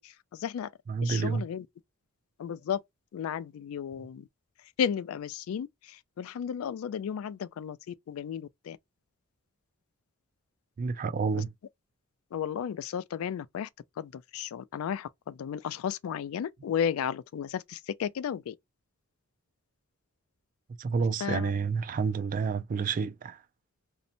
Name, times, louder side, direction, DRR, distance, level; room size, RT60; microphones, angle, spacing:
voice 1, 0.0-0.7 1.0-1.7 2.4-2.8 3.1-4.3 4.8-8.8 11.3-11.4 12.3-13.7 14.0-18.6 21.2-21.5, left 8 dB, 75° left, 0.3 m, -34 dB
voice 2, 0.9-1.4 10.8-11.5 20.8-23.4, right 5 dB, 40° right, 0.3 m, -29 dB
2.6 x 2.1 x 2.5 m
head